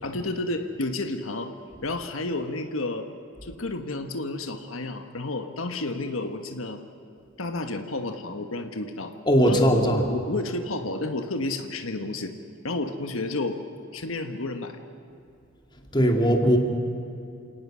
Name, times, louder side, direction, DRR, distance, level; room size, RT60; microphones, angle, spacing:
voice 1, 0.0-1.5 1.8-3.1 3.4-6.8 7.4-9.1 9.5-12.3 12.6-13.6 13.9-14.8, left 2 dB, 85° left, 6 dB, 1.4 m, -31 dB
voice 2, 9.3-10.0 15.9-16.6, equal, 20° left, 2 dB, 2.6 m, -19 dB
28.5 x 18.5 x 6.3 m, 2.7 s
head